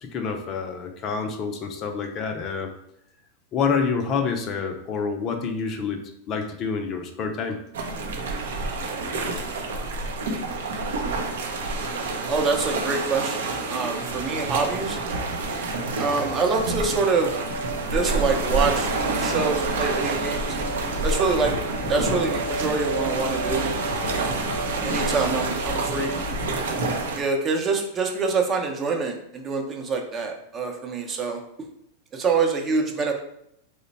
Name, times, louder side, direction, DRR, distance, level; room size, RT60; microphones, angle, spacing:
voice 1, 0.0-2.7 3.5-6.0 6.3-7.6, left 5 dB, 40° left, 5 dB, 0.5 m, -27 dB
sound 1, 7.7-27.2, right 3 dB, 75° right, 0.6 m, -28 dB
voice 2, 12.3-15.0 16.0-17.3 17.9-20.5 21.0-21.5 21.9-23.7 24.8-26.1 27.2-31.4 32.1-33.1, right 4 dB, 25° right, 2 dB, 0.7 m, -25 dB
sound 2, 16.9-26.2, right 2 dB, 85° left, 0.8 m, -35 dB
sound 3, 18.5-26.8, left 4 dB, 5° right, 1.0 m, -37 dB
3.0 x 2.1 x 4.0 m, 0.74 s
hypercardioid pair, 110°, 0 cm